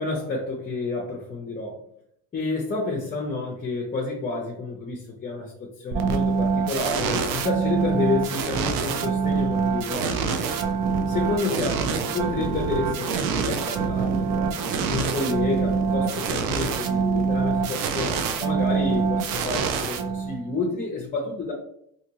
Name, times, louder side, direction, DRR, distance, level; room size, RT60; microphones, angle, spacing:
voice 1, 0.0-1.8 2.3-10.2 11.1-21.5, left 3 dB, 25° left, -1 dB, 0.6 m, -29 dB
sound 1, 5.9-20.6, right 5 dB, 85° right, 0.5 m, -25 dB
2.7 x 2.5 x 2.8 m, 0.71 s
cardioid pair, 120°, 33 cm